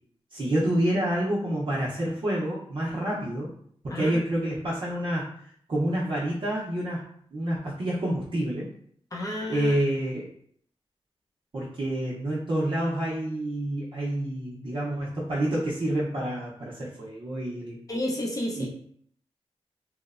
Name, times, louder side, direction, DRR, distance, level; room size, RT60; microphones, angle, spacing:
voice 1, 0.3-3.5 3.8-5.3 5.7-7.0 7.3-8.7 9.5-10.3 11.5-17.8 18.6-18.7, right 1 dB, 50° right, -7 dB, 0.6 m, -28 dB
voice 2, 3.9-4.2 9.1-9.7 17.9-18.7, left 1 dB, 35° left, -1 dB, 0.5 m, -31 dB
2.9 x 2.0 x 2.4 m, 0.63 s
wide cardioid pair, 95°, 11 cm